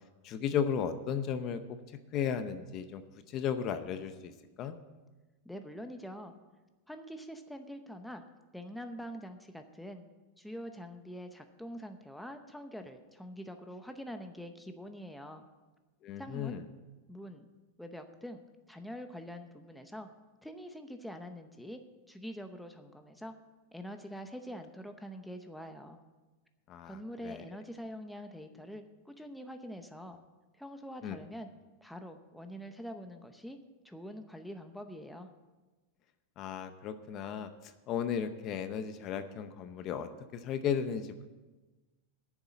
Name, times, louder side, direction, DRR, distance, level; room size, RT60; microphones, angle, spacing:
voice 1, 0.2-1.6 2.1-3.0 3.3-4.3 4.6-4.8 16.0-16.6 26.7-27.0 27.2-27.4 31.0-31.2 36.4-37.5 37.9-41.1, left 8 dB, 35° left, 10 dB, 0.7 m, -34 dB
voice 2, 5.4-6.3 6.9-8.2 8.5-10.0 10.4-15.4 16.2-16.6 17.1-17.5 17.8-20.1 20.4-23.4 23.7-26.0 26.9-30.2 30.6-31.5 31.8-33.6 33.8-35.3, equal, ahead, 6 dB, 0.7 m, -45 dB
9.8 x 7.2 x 9.0 m, 1.2 s
supercardioid pair, 150°, 0 cm